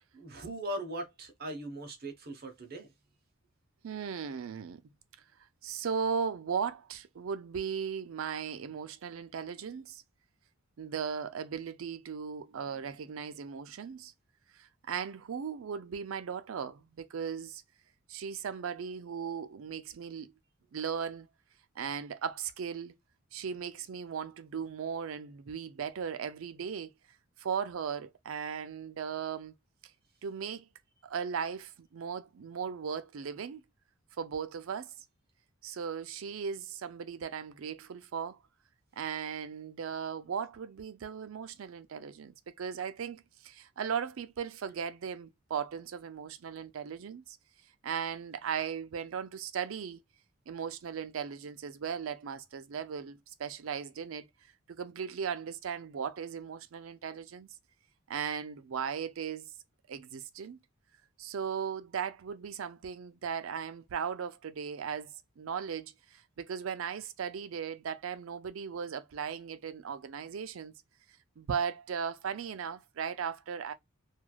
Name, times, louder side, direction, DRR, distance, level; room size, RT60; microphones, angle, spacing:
voice 1, 0.1-2.9, right 1 dB, 45° right, 0.8 m, -39 dB
voice 2, 3.8-4.8 5.6-10.0 10.8-14.1 14.5-17.6 18.1-20.3 20.7-21.3 21.8-22.9 23.3-26.9 27.4-29.5 30.2-30.7 31.0-33.6 34.2-34.9 35.6-38.4 39.0-47.4 47.8-50.0 50.5-54.3 54.7-57.5 58.1-59.5 59.9-60.6 61.2-70.7 71.4-73.7, right 7 dB, 70° right, 0.4 m, -37 dB
3.1 x 2.4 x 2.3 m
head